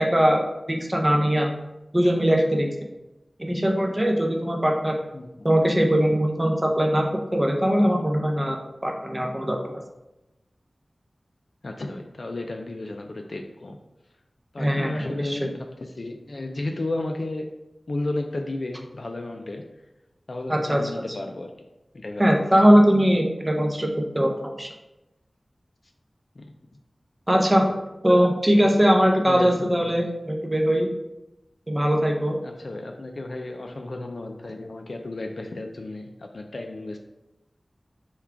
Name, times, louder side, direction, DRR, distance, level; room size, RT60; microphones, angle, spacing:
voice 1, 0.0-1.5 1.9-2.7 3.4-5.0 5.4-7.1 7.3-9.8 14.6-15.4 20.5-20.9 22.2-24.7 27.3-27.7 28.0-30.9 31.7-32.4, equal, 20° right, 1 dB, 0.5 m, -21 dB
voice 2, 11.6-13.8 14.5-17.6 17.9-19.7 20.3-21.6 21.9-22.3 26.4-26.5 27.7-27.8 29.3-29.9 32.4-37.0, left 2 dB, 65° left, 3 dB, 0.3 m, -33 dB
3.6 x 2.3 x 4.4 m, 0.96 s
wide cardioid pair, 65°, 0 cm